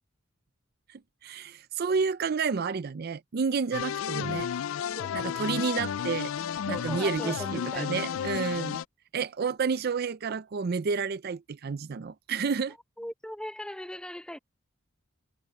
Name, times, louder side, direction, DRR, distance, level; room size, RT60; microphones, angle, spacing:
voice 1, 0.9-4.5 5.1-6.3 6.7-8.8 9.1-12.8, right 5 dB, 50° right, 0.4 m, -30 dB
sound 1, 3.7-8.8, left 8 dB, 80° left, 0.4 m, -32 dB
voice 2, 4.9-5.3 6.7-8.0 13.0-14.4, equal, 5° left, 0.9 m, -39 dB
head